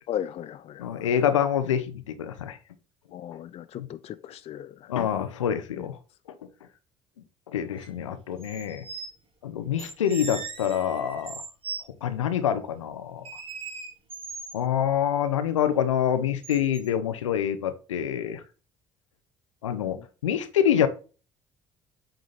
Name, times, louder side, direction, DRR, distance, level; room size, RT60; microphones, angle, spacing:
voice 1, 0.1-1.1 3.1-4.9 5.8-5.9 19.9-20.0, left 10 dB, 40° left, 0.4 m, -36 dB
voice 2, 0.8-2.6 3.8-3.9 4.9-6.0 7.5-8.8 9.4-11.3 12.0-13.2 14.5-18.4 19.6-20.9, left 9 dB, 80° left, 0.7 m, -26 dB
sound 1, 7.8-7.9 8.4-9.1 9.8-11.8 13.2-14.6 16.4-16.9, right 4 dB, 35° right, 2.2 m, -39 dB
7.8 x 3.8 x 4.0 m
figure-of-eight pair, 55°, 16 cm